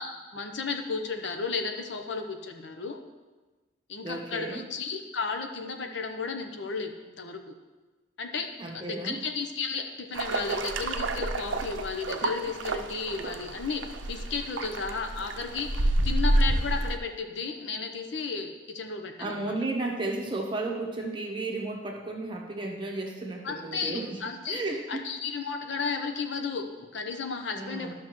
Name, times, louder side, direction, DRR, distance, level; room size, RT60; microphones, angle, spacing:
voice 1, 0.0-3.0 3.9-7.5 8.2-19.6 23.4-24.6 24.9-27.9, left 4 dB, 75° left, 5 dB, 0.8 m, -34 dB
voice 2, 4.0-4.6 8.6-9.2 19.2-24.2 24.5-25.0 27.5-27.9, right 2 dB, 25° right, 0 dB, 1.0 m, -33 dB
sound 1, 10.1-17.0, right 1 dB, 85° right, 0.5 m, -29 dB
12.5 x 5.9 x 3.0 m, 1.2 s
head